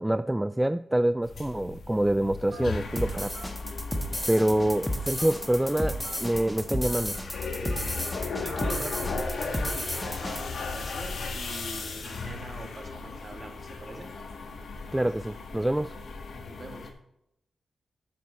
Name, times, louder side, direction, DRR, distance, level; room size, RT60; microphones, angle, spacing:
voice 1, 0.0-3.4 4.3-7.2 14.9-16.0, right 1 dB, 10° right, 13 dB, 0.3 m, -26 dB
sound 1, 1.2-16.9, left 4 dB, 70° left, 1.5 m, -37 dB
Telephone, 2.5-2.8 3.3-3.5 4.3-4.7 5.2-5.3 6.0-6.2 6.9-7.0 7.7-7.8 8.5-8.6 9.3-9.5 10.2-10.4, right 4 dB, 85° right, 3.5 m, -47 dB
sound 2, 3.0-10.4, equal, 10° left, 1.5 m, -32 dB
voice 2, 8.4-14.1 16.4-16.9, right 2 dB, 40° right, 3 dB, 2.2 m, -42 dB
8.3 x 7.7 x 4.1 m, 0.80 s
cardioid pair, 60°, 0 cm